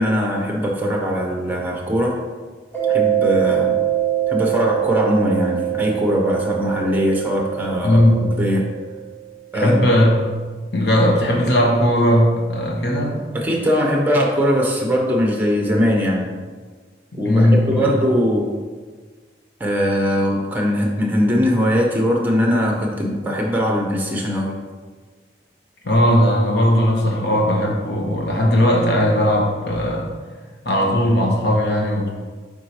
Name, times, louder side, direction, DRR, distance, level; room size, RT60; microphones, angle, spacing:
voice 1, 0.0-2.1 2.9-3.8 4.3-8.0 8.4-8.6 9.5-9.8 13.3-16.3 17.1-18.5 19.6-24.6, equal, 10° right, 0 dB, 0.9 m, -20 dB
Mallet percussion, 2.7-9.1, right 12 dB, 15° left, 1.5 m, -23 dB
voice 2, 7.8-8.3 9.5-10.3 10.7-13.2 17.2-17.9 25.8-30.1 30.6-32.1, equal, 65° left, -1 dB, 1.2 m, -17 dB
7.5 x 4.6 x 3.1 m, 1.4 s
head